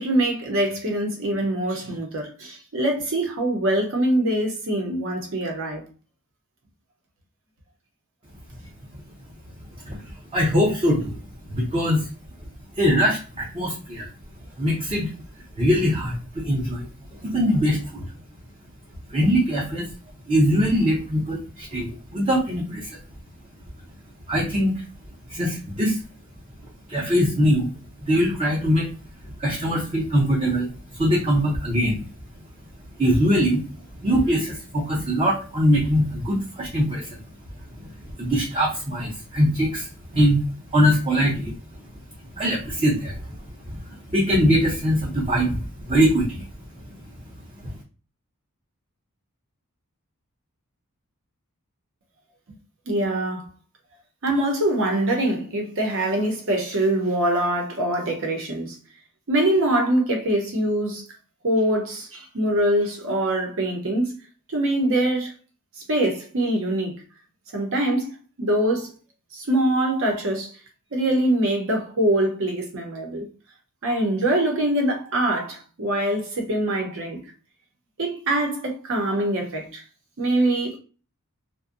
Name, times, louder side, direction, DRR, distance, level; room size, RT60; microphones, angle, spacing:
voice 1, 0.0-5.8 52.9-53.5 54.2-58.8 59.3-61.0 61.4-64.1 64.5-65.3 65.9-67.0 67.5-68.1 68.4-68.9 69.3-70.5 70.9-73.3 73.8-77.2 78.0-79.8 80.2-80.8, right 1 dB, 65° right, 0.7 m, -23 dB
voice 2, 10.3-11.2 11.5-12.1 12.7-14.1 14.6-15.1 15.6-16.9 17.2-18.0 19.1-19.9 20.3-23.0 24.3-24.8 25.3-26.0 26.9-27.7 28.0-28.9 29.4-32.1 33.0-33.7 34.0-37.2 38.2-39.9 40.1-40.4 40.7-41.6 42.4-43.4 43.8-46.5 47.6-47.7, equal, 25° right, 0.6 m, -22 dB
2.6 x 2.1 x 2.5 m
head